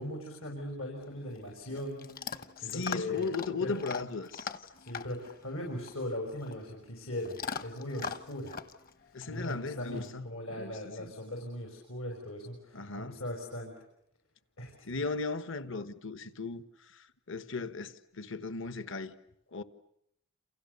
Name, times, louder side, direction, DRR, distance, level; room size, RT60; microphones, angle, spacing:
voice 1, 0.0-3.3 3.6-3.8 4.8-7.4 7.6-8.5 9.3-13.7 14.6-14.9, left 1 dB, 85° left, 6.3 m, -39 dB
Chewing mastication / Dog, 1.0-10.1, left 5 dB, 45° left, 1.2 m, -43 dB
voice 2, 2.6-4.5 9.1-11.1 12.7-13.2 14.8-16.6 16.9-19.1 19.5-19.6, left 4 dB, 65° left, 1.4 m, -37 dB
29.5 x 28.5 x 7.0 m
head